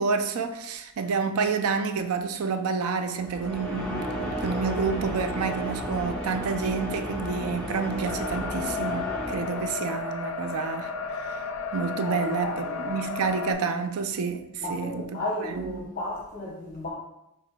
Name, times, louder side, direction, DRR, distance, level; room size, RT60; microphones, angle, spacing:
voice 1, 0.0-10.9 11.2-11.4 11.7-15.8, right 5 dB, 75° right, 0.4 m, -29 dB
sound 1, 3.2-10.1, equal, 5° left, 0.5 m, -33 dB
sound 2, 8.0-13.5, left 5 dB, 65° left, 0.4 m, -33 dB
voice 2, 12.0-12.9 14.6-16.9, left 1 dB, 40° left, 0.8 m, -34 dB
5.0 x 3.3 x 2.2 m
head